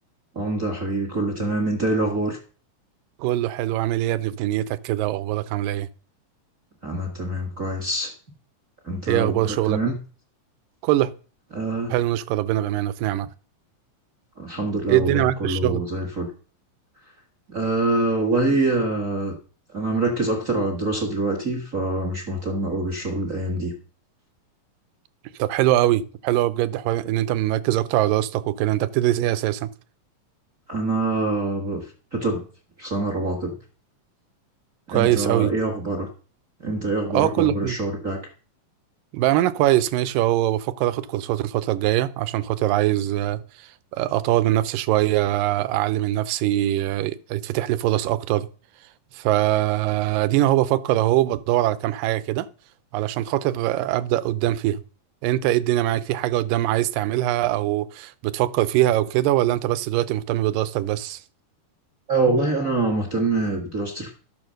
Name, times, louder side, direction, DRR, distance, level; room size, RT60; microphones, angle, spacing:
voice 1, 0.3-2.4 6.8-8.1 8.8-10.0 11.5-11.9 14.4-16.3 17.5-19.3 19.7-23.7 30.7-32.4 32.8-33.6 34.9-36.1 36.6-38.2 62.1-64.1, right 2 dB, 35° right, 1.3 m, -25 dB
voice 2, 3.2-5.9 9.1-9.8 10.8-11.1 11.9-13.3 14.9-15.8 25.4-29.7 34.9-35.5 37.1-37.8 39.1-43.4 43.9-48.5 49.1-52.5 52.9-54.8 55.2-61.2, right 14 dB, 80° right, 2.3 m, -22 dB
12.5 x 7.0 x 6.4 m
omnidirectional pair, 4.0 m